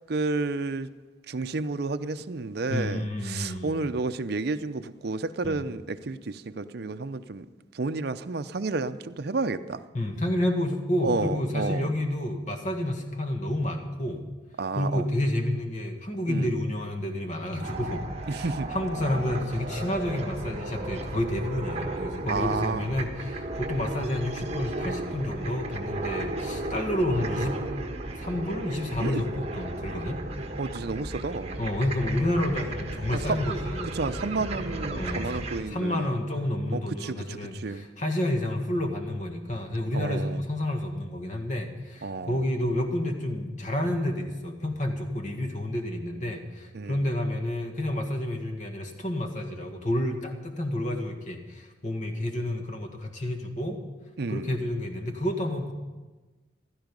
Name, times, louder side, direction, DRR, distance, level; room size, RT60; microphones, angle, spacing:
voice 1, 0.1-0.9 1.3-7.5 7.7-9.8 11.0-11.9 14.6-15.1 16.3-16.5 18.3-18.7 22.3-22.9 29.0-29.2 30.6-31.6 33.1-33.4 33.9-36.2 36.7-37.9 39.9-40.4 42.0-42.4 46.7-47.1 54.2-54.6, right 3 dB, 55° right, 10 dB, 0.6 m, -31 dB
voice 2, 2.7-3.8 5.4-5.6 9.9-14.2 14.7-18.0 18.3-18.4 18.7-27.6 28.2-30.2 31.6-33.9 34.9-35.4 35.7-53.8 54.3-55.7, left 1 dB, 40° left, 4 dB, 1.6 m, -30 dB
sound 1, 17.6-35.6, right 2 dB, 35° right, 1.3 m, -34 dB
15.5 x 13.0 x 5.3 m, 1.2 s
head